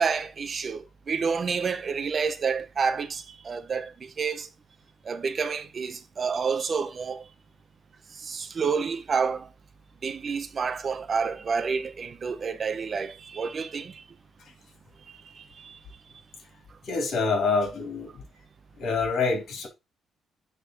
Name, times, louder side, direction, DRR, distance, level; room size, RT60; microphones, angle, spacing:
voice 1, 0.0-3.9 4.2-4.5 5.1-7.2 8.3-9.5 10.0-13.9, right 5 dB, 40° right, 0.7 m, -29 dB
voice 2, 16.9-18.1 18.8-19.7, left 4 dB, 60° left, 3.2 m, -26 dB
9.5 x 3.7 x 3.8 m
cardioid pair, 120°, 0 cm